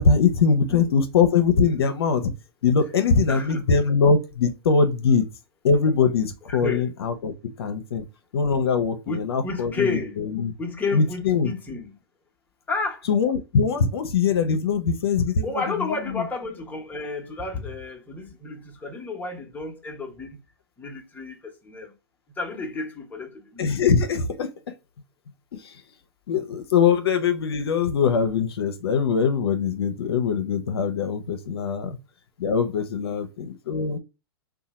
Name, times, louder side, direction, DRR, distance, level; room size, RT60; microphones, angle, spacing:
voice 1, 0.0-2.3 2.6-5.3 5.6-8.0 8.3-10.5 10.9-11.5 13.1-15.5 23.6-24.7 25.5-25.8 26.3-32.0 32.4-34.0, left 5 dB, 80° left, 0.6 m, -22 dB
voice 2, 3.3-3.6 6.6-6.8 9.1-10.2 10.6-11.9 12.7-13.0 15.4-20.4 20.8-21.9 22.4-23.7 33.0-33.2, left 3 dB, 15° left, 0.9 m, -31 dB
2.8 x 2.2 x 4.1 m
hypercardioid pair, 115°, 13 cm